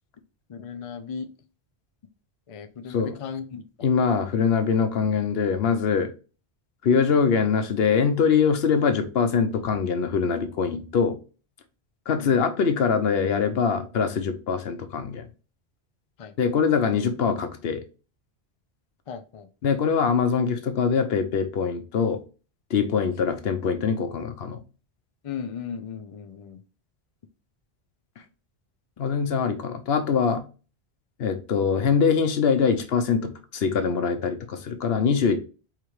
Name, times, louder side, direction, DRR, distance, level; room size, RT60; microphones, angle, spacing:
voice 1, 0.5-1.3 2.5-3.6 12.1-12.4 16.2-16.3 19.1-19.7 25.2-26.6, left 6 dB, 45° left, 0.5 m, -36 dB
voice 2, 3.8-6.1 6.8-11.2 12.1-15.2 16.4-17.8 19.6-22.2 22.7-24.6 29.0-30.4 31.2-35.4, left 6 dB, 75° left, 0.9 m, -23 dB
5.0 x 3.3 x 3.1 m
omnidirectional pair, 1.1 m